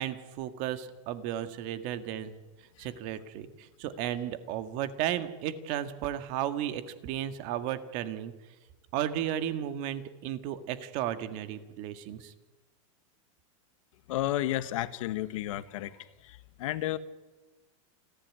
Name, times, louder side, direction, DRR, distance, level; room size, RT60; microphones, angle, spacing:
voice 1, 0.0-2.4 2.8-8.3 8.9-12.3, right 11 dB, 45° right, 10 dB, 1.8 m, -34 dB
voice 2, 14.1-15.9 16.6-17.0, left 14 dB, 70° left, 13 dB, 1.4 m, -31 dB
29.0 x 11.0 x 9.7 m, 1.2 s
supercardioid pair, 145°, 17 cm